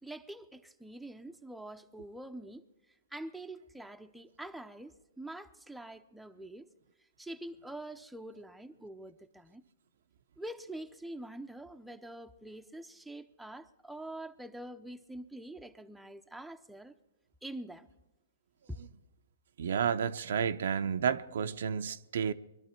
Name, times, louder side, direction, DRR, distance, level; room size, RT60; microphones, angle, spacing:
voice 1, 0.0-2.6 3.1-6.7 7.2-9.6 10.4-16.9 17.4-17.9 18.7-18.8, right 1 dB, ahead, 0.7 m, -45 dB
voice 2, 19.6-22.3, right 7 dB, 70° right, 0.7 m, -31 dB
22.0 x 12.0 x 4.5 m
hypercardioid pair, 135°, 0 cm